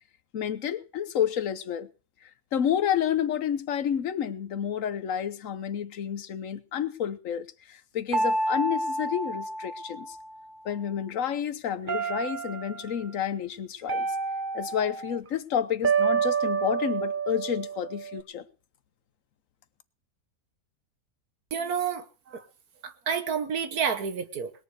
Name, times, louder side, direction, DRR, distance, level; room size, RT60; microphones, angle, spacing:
voice 1, 0.3-1.9 2.5-10.2 10.6-14.1 14.5-18.4, left 9 dB, 65° left, 1.3 m, -30 dB
sound 1, 8.1-10.5 11.9-12.9 13.9-15.2 15.8-18.2, right 4 dB, 35° right, 1.1 m, -29 dB
voice 2, 21.5-22.5 22.8-24.5, right 7 dB, 85° right, 1.8 m, -30 dB
20.5 x 7.2 x 6.5 m
omnidirectional pair, 1.5 m